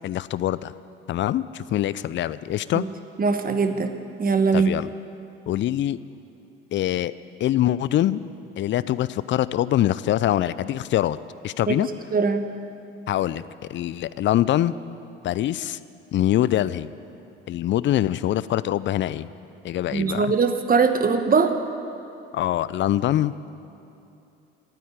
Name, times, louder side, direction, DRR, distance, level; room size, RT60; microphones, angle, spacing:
voice 1, 0.0-0.7 1.1-2.8 4.5-4.9 5.5-6.0 6.7-7.1 7.4-8.2 8.6-11.2 11.4-11.9 13.1-13.4 13.7-14.7 15.2-15.8 16.1-16.9 17.5-19.3 19.6-20.3 22.3-23.5, left 13 dB, 40° left, 17 dB, 0.5 m, -24 dB
voice 2, 3.2-4.7 11.7-11.8 12.1-12.4 19.9-21.5, right 5 dB, 30° right, 8 dB, 1.2 m, -21 dB
12.5 x 9.4 x 9.0 m, 2.8 s
hypercardioid pair, 60°, 29 cm